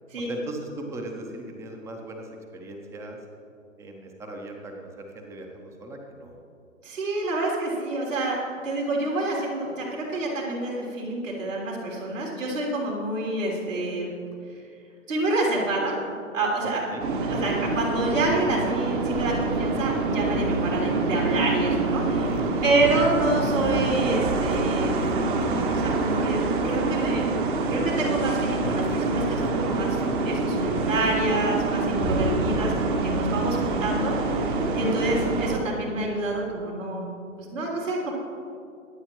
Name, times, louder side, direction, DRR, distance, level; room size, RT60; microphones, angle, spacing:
voice 1, 0.2-3.2 3.8-6.4 16.6-17.0 22.4-22.5 34.8-35.1, right 1 dB, 5° right, 3 dB, 0.8 m, -38 dB
voice 2, 6.8-8.4 8.6-14.1 15.1-16.0 16.3-16.8 17.2-22.3 22.6-25.3 25.7-27.4 27.7-30.0 30.2-37.1 37.4-38.1, right 2 dB, 65° right, -3 dB, 3.5 m, -27 dB
sound 1, 17.0-35.6, right 3 dB, 40° right, 1.5 m, -26 dB
sound 2, 22.0-22.4 24.2-25.1 26.4-26.8 28.6-29.5, left 6 dB, 50° left, 1.2 m, -38 dB
23.5 x 8.5 x 3.1 m, 2.5 s
figure-of-eight pair, 130°, 41 cm